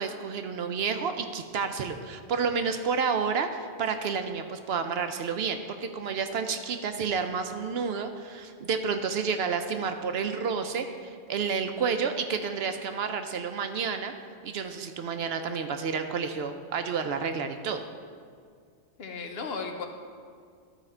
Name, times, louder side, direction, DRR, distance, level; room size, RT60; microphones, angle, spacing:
voice 1, 0.0-14.1 14.4-17.8, right 5 dB, 70° right, 7 dB, 0.8 m, -30 dB
voice 2, 19.0-19.9, left 4 dB, 60° left, 4 dB, 1.0 m, -35 dB
13.0 x 4.9 x 4.4 m, 2.1 s
omnidirectional pair, 1.2 m